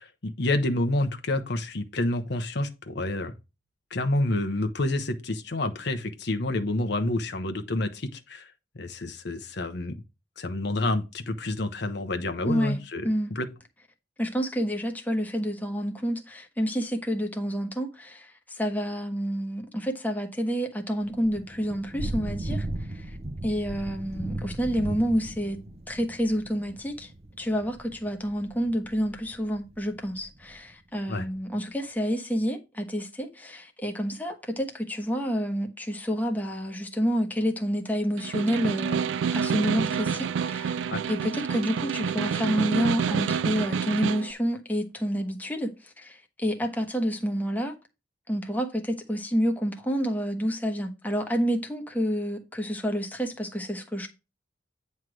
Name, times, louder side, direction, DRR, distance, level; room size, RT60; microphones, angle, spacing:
voice 1, 0.0-3.3 3.9-10.0 10.4-13.5 31.1-31.2 40.9-41.0, left 2 dB, 65° left, 1.0 m, -29 dB
voice 2, 12.4-12.8 13.0-13.3 14.2-23.2 23.4-25.6 25.9-27.1 27.4-39.0 39.3-47.7 48.3-54.1, equal, 10° left, 1.1 m, -29 dB
Thunder / Rain, 21.0-30.6, right 1 dB, 35° right, 0.7 m, -37 dB
Snare drum, 38.2-44.3, right 7 dB, 75° right, 0.4 m, -28 dB
9.2 x 3.3 x 6.2 m
head